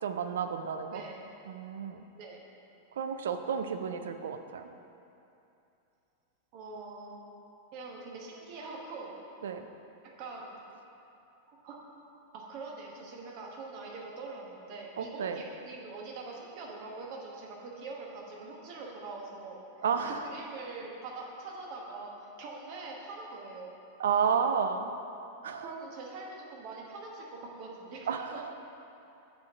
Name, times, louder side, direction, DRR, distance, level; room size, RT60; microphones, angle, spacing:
voice 1, 0.0-1.0 1.5-2.0 2.9-4.7 9.4-9.7 15.0-15.4 19.8-20.2 24.0-25.0 25.4-25.7 28.1-28.5, right 6 dB, 65° right, 7 dB, 0.4 m, -31 dB
voice 2, 0.9-1.3 2.1-2.4 6.5-7.2 7.7-9.2 10.0-10.6 11.5-11.8 12.3-19.6 20.0-23.7 25.6-28.5, right 3 dB, 45° right, -2 dB, 1.2 m, -43 dB
6.9 x 4.5 x 6.3 m, 2.8 s
figure-of-eight pair, 90°, 0 cm